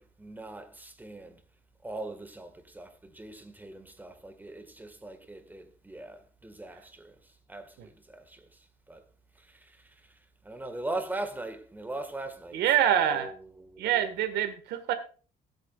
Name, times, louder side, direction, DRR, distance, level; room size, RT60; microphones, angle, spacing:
voice 1, 0.0-1.4 1.8-8.6 8.9-9.0 9.3-10.1 10.4-14.2, right 2 dB, 10° right, 1.8 m, -41 dB
voice 2, 12.5-13.3 13.8-14.9, right 10 dB, 80° right, 1.8 m, -25 dB
16.0 x 9.0 x 2.5 m
cardioid pair, 110°, 17 cm